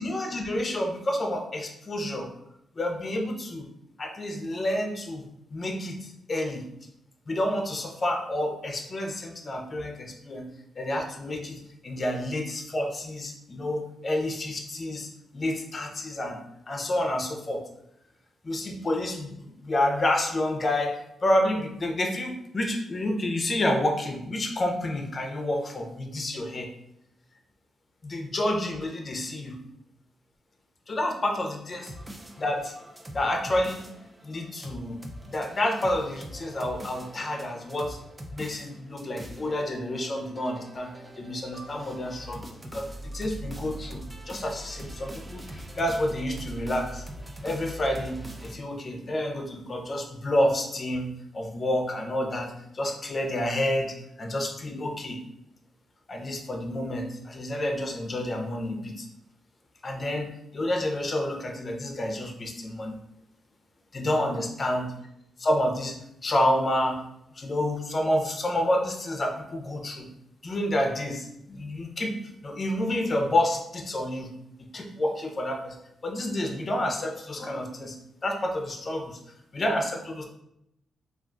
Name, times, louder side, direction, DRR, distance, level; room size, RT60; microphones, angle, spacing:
voice 1, 0.0-2.3 2.8-3.7 4.0-6.7 7.3-10.5 10.8-16.4 16.7-17.6 18.4-26.7 28.0-29.6 30.9-31.9 32.4-32.7 33.1-33.9 34.2-35.0 35.2-38.0 38.3-42.4 42.7-47.0 47.4-55.2 56.1-59.1 59.8-63.0 63.9-64.9 65.4-66.0 66.2-67.0 67.3-70.1 70.4-72.2 72.4-74.3 74.6-75.8 76.0-78.0 78.2-79.2 79.5-80.3, left 1 dB, 40° left, 3 dB, 0.6 m, -29 dB
sound 1, 31.7-48.5, right 1 dB, 20° right, 0.4 m, -42 dB
2.4 x 2.3 x 3.7 m, 0.78 s
cardioid pair, 75°, 0 cm